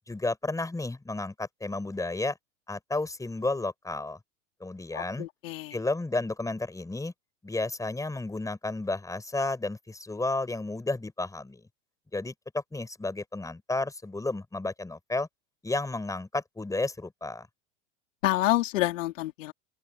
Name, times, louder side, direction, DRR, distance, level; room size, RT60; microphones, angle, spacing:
voice 1, 0.1-2.4 2.7-4.2 4.6-5.3 5.7-7.1 7.4-11.6 12.1-15.3 15.6-17.5, left 2 dB, 10° left, 4.6 m, -32 dB
voice 2, 4.9-5.8 18.2-19.5, left 16 dB, 80° left, 3.2 m, -28 dB
open air
hypercardioid pair, 105°, 38 cm